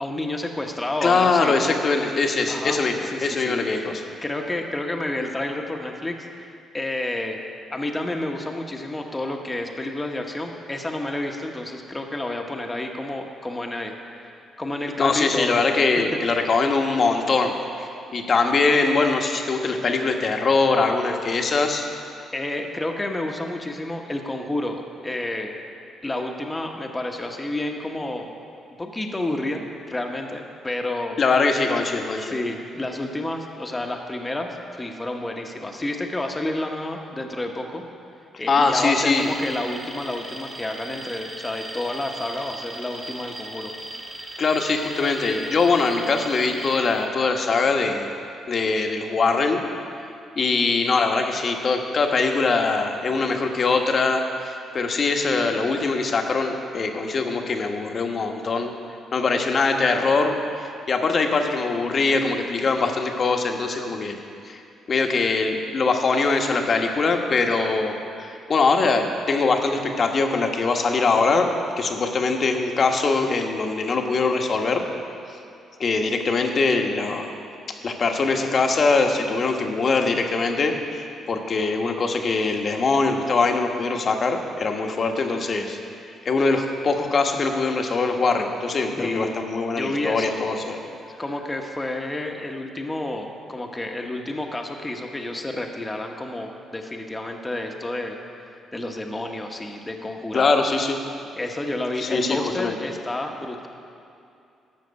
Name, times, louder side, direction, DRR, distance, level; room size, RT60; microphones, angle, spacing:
voice 1, 0.0-1.5 2.5-2.8 3.1-3.9 4.2-7.4 7.7-13.9 14.2-15.7 22.3-25.5 26.0-28.3 28.8-31.2 32.2-37.9 38.4-43.7 89.0-89.3 89.7-90.4 91.2-98.2 98.7-100.5 101.3-103.7, left 1 dB, 15° left, 2 dB, 1.1 m, -30 dB
voice 2, 1.0-4.0 15.0-21.9 31.2-32.3 38.5-39.3 44.4-48.1 48.5-49.6 50.4-58.7 59.1-64.2 64.4-64.6 64.9-71.5 71.8-74.8 75.8-77.3 77.8-85.8 86.2-90.8 100.3-101.0 102.0-102.8, left 4 dB, 45° left, 3 dB, 1.2 m, -22 dB
Alarm, 39.1-47.1, right 1 dB, 30° right, 1.9 m, -38 dB
12.5 x 5.9 x 8.0 m, 2.6 s
cardioid pair, 90°, 0 cm